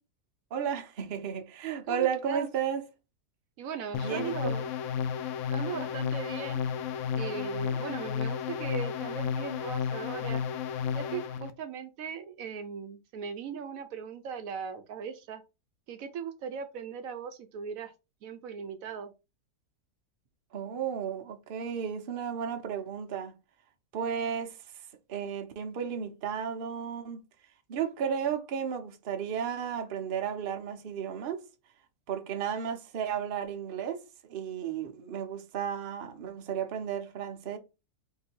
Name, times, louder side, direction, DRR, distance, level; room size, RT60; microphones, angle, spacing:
voice 1, 0.5-2.8 4.0-4.5 20.5-23.3 23.9-24.8 25.1-27.2 27.7-31.4 32.1-37.6, right 8 dB, 50° right, 0.7 m, -33 dB
voice 2, 1.9-2.5 3.6-4.7 5.5-6.6 7.1-10.4 10.9-15.4 15.9-17.9 18.2-19.1, right 7 dB, 70° right, 1.0 m, -38 dB
sound 1, 3.9-11.5, left 7 dB, 70° left, 0.8 m, -32 dB
3.8 x 2.6 x 4.3 m
omnidirectional pair, 1.6 m